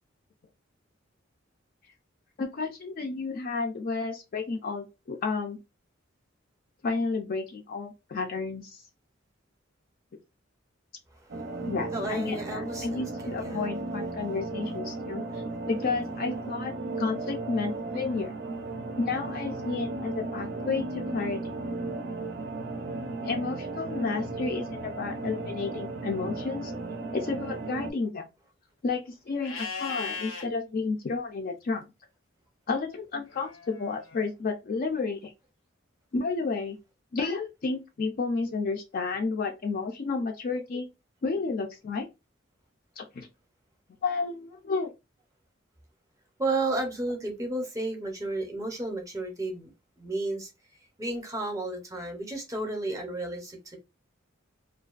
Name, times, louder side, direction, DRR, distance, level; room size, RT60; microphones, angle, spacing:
voice 1, 2.4-5.6 6.8-8.8 11.7-15.2 15.7-18.3 19.0-21.4 23.2-26.7 27.1-28.3 28.8-31.8 32.7-35.3 36.1-36.8 37.1-40.9 41.2-42.1 43.0-43.3 44.0-44.9, left 4 dB, 45° left, 0.4 m, -31 dB
voice 2, 11.1-13.7 46.4-49.7 50.0-50.5 51.0-53.8, right 2 dB, 15° right, 0.6 m, -33 dB
sound 1, 11.3-27.9, right 3 dB, 60° right, 0.4 m, -35 dB
Livestock farm animals working animals, 29.4-30.5 33.3-34.3, left 5 dB, 85° left, 0.8 m, -37 dB
2.4 x 2.2 x 2.3 m
head